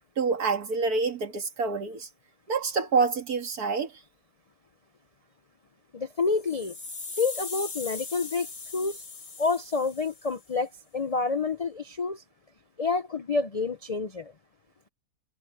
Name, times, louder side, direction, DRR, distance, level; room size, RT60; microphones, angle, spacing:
voice 1, 0.0-2.1 2.5-3.9, right 4 dB, 85° right, 2.5 m, -27 dB
voice 2, 5.9-6.8 7.2-8.5 8.7-9.0 9.4-12.2 12.8-14.3, left 4 dB, 55° left, 0.4 m, -28 dB
sound 1, 6.2-10.4, left 4 dB, 75° left, 4.5 m, -40 dB
omnidirectional pair, 1.6 m